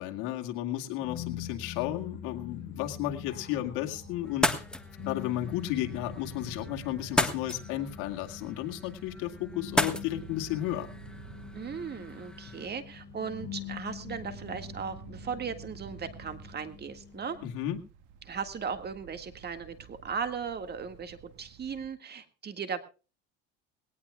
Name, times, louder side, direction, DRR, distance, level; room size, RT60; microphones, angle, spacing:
voice 1, 0.0-4.6 5.1-10.9 17.4-17.8, left 13 dB, 75° left, 3 dB, 2.1 m, -33 dB
sound 1, 1.0-17.5, left 8 dB, 35° left, 5.6 m, -44 dB
sound 2, 3.9-21.9, right 7 dB, 85° right, 1.8 m, -52 dB
sound 3, 4.3-12.7, left 1 dB, 5° left, 1.4 m, -35 dB
voice 2, 11.5-17.4 18.3-22.8, right 6 dB, 30° right, 9 dB, 1.9 m, -37 dB
19.5 x 18.5 x 2.3 m, 0.34 s
supercardioid pair, 110°, 31 cm